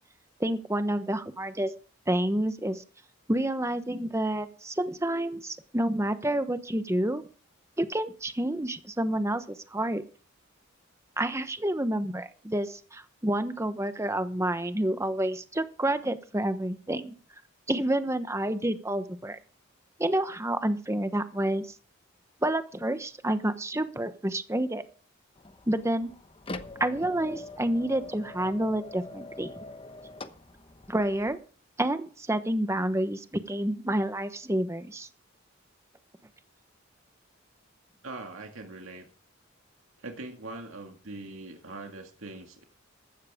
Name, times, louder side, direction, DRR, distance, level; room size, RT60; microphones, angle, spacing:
voice 1, 0.4-1.7 2.1-2.8 3.3-7.2 7.8-10.0 11.2-17.1 17.7-19.4 20.0-21.7 22.4-24.8 25.7-26.1 26.8-29.5 30.9-31.4 31.8-35.1, right 1 dB, 15° right, 10 dB, 1.0 m, -29 dB
sound 1, 25.3-31.3, left 2 dB, 25° left, 0.9 m, -44 dB
voice 2, 38.0-39.0 40.0-42.6, right 2 dB, 75° right, 3 dB, 2.1 m, -42 dB
15.5 x 12.5 x 3.7 m, 0.39 s
head